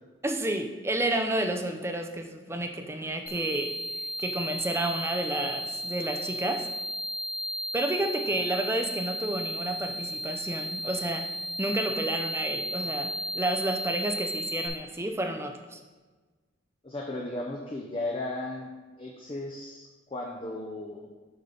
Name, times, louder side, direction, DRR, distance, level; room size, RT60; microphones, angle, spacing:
voice 1, 0.2-3.8 4.2-6.7 7.7-11.3 11.6-15.8, right 1 dB, 15° right, 5 dB, 0.5 m, -30 dB
sound 1, 3.3-14.7, equal, 45° left, 1.1 m, -34 dB
voice 2, 16.8-18.7 19.0-21.1, left 2 dB, 30° left, 0 dB, 0.6 m, -35 dB
6.7 x 5.7 x 3.8 m, 1.3 s
head